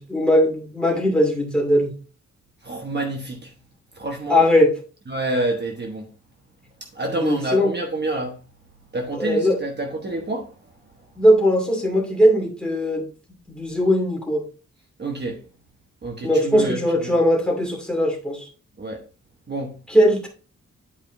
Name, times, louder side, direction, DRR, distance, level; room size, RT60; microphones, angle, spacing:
voice 1, 0.0-1.9 4.3-4.7 7.2-7.7 9.1-9.6 11.2-13.1 13.5-14.4 16.2-18.5 19.9-20.3, equal, 5° left, 2.5 m, -19 dB
voice 2, 2.6-3.5 3.9-4.4 5.1-6.1 6.8-8.4 8.9-10.5 15.0-15.4 16.0-17.2 18.8-19.0 19.5-19.8, right 2 dB, 35° right, 1.1 m, -28 dB
11.0 x 5.1 x 2.6 m
wide cardioid pair, 170°, 29 cm